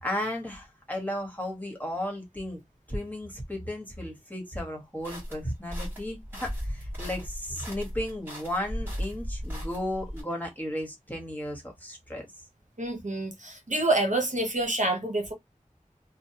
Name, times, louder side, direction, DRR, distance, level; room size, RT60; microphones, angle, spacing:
voice 1, 0.0-2.6 2.9-12.2, left 1 dB, 10° left, 1.3 m, -34 dB
sound 1, 5.0-10.2, equal, 15° right, 1.8 m, -36 dB
voice 2, 12.8-15.3, right 2 dB, 60° right, 0.9 m, -27 dB
3.0 x 2.2 x 2.8 m
wide cardioid pair, 45°, 14 cm